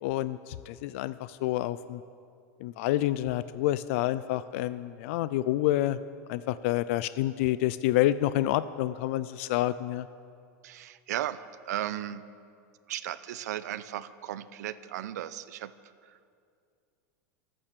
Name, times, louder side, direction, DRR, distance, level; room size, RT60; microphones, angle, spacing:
voice 1, 0.0-2.0 2.6-6.0 6.3-10.1, left 14 dB, 50° left, 15 dB, 0.4 m, -28 dB
voice 2, 10.6-12.2 12.9-15.7 16.0-16.4, right 12 dB, 80° right, 15 dB, 0.7 m, -36 dB
23.5 x 8.9 x 6.7 m, 2.4 s
supercardioid pair, 165°, 9 cm